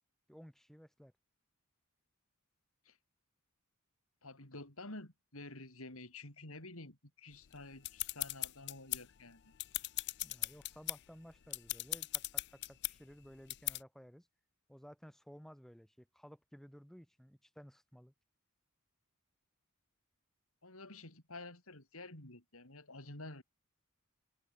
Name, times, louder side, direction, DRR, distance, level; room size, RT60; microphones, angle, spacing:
voice 1, 0.3-1.1 10.2-14.3 14.7-18.1, equal, ahead, 3.5 m, -56 dB
voice 2, 4.2-9.5 20.6-23.4, left 2 dB, 70° left, 6.2 m, -50 dB
sound 1, 7.5-9.2 9.5-11.0 11.4-12.9 13.5-13.8, left 19 dB, 55° left, 0.5 m, -38 dB
head